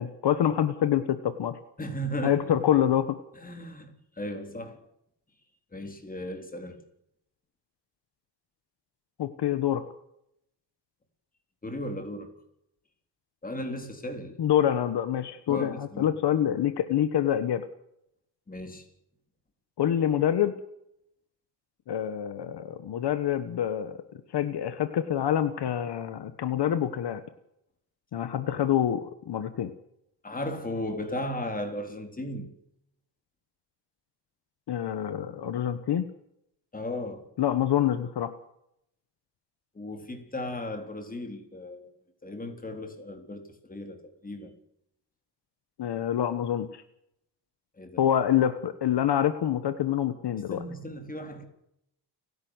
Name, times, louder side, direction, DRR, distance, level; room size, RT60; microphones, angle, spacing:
voice 1, 0.0-1.6 2.2-3.2 9.2-9.8 14.4-17.6 19.8-20.5 21.9-24.0 24.3-27.2 28.1-29.7 34.7-36.0 37.4-38.4 45.8-46.8 48.0-50.6, left 10 dB, 70° left, 1.4 m, -26 dB
voice 2, 1.8-2.6 3.3-4.8 5.7-6.8 11.6-12.3 13.4-14.4 15.5-16.1 18.5-18.8 30.2-32.5 36.7-37.4 39.7-41.9 42.2-44.0 44.2-44.5 47.8-48.0 50.5-51.4, left 1 dB, 20° left, 3.9 m, -36 dB
30.0 x 11.0 x 8.1 m
wide cardioid pair, 155°, 42 cm